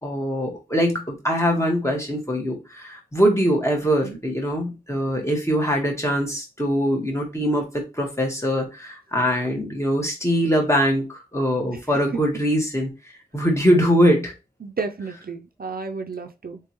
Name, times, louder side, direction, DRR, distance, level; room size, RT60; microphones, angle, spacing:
voice 1, 0.0-12.9 13.3-14.3, equal, 15° left, 1.3 m, -22 dB
voice 2, 14.6-16.6, right 4 dB, 65° right, 0.4 m, -32 dB
3.5 x 3.2 x 2.9 m
wide cardioid pair, 50°, 16 cm